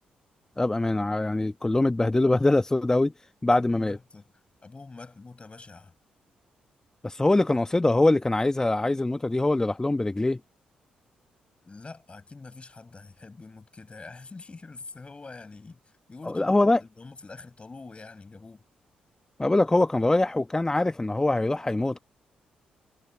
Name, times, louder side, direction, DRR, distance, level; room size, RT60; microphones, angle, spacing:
voice 1, 0.6-4.0 7.0-10.4 16.2-16.8 19.4-22.0, left 2 dB, 20° left, 1.0 m, -23 dB
voice 2, 3.4-4.2 4.6-5.9 11.6-15.8 16.1-16.5 16.8-18.6, left 3 dB, 35° left, 6.8 m, -45 dB
hypercardioid pair, 45°, 3 cm